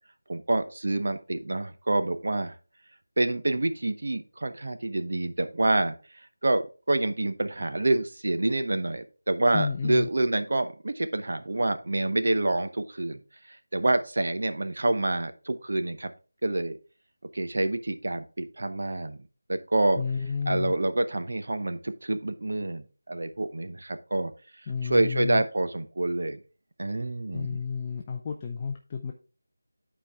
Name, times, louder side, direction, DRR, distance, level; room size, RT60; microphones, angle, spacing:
voice 1, 0.3-2.5 3.2-5.9 6.4-13.2 13.7-16.1 16.4-16.8 17.3-19.2 19.5-20.0 20.5-24.3 24.9-26.4 26.8-27.6, right 2 dB, 60° right, 9 dB, 0.8 m, -27 dB
voice 2, 9.5-10.1 20.0-20.7 24.7-25.4 27.3-29.1, left 5 dB, 15° left, 2 dB, 0.4 m, -31 dB
10.0 x 4.5 x 3.5 m, 0.35 s
figure-of-eight pair, 175°, 0 cm